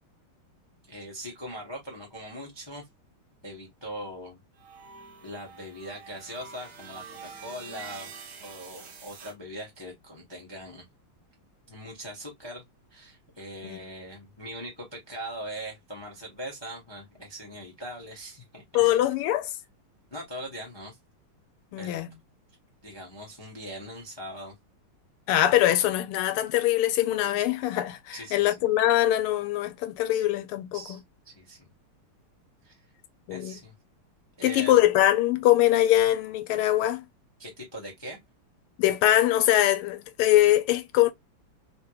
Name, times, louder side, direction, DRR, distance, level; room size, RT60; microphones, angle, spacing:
voice 1, 0.9-2.9 3.4-4.4 5.2-8.1 8.4-10.9 11.7-12.6 12.9-19.0 20.1-21.0 21.8-22.0 22.8-24.5 28.1-28.5 30.7-31.7 32.6-32.8 33.3-33.7 34.4-34.7 37.4-38.2, equal, 40° left, 0.3 m, -41 dB
sound 1, 4.6-9.3, right 6 dB, 60° right, 1.2 m, -46 dB
voice 2, 18.7-19.5 21.7-22.1 25.3-30.8 33.3-33.6 34.4-37.0 38.8-41.1, left 13 dB, 85° left, 1.5 m, -23 dB
3.6 x 3.0 x 2.3 m
omnidirectional pair, 2.4 m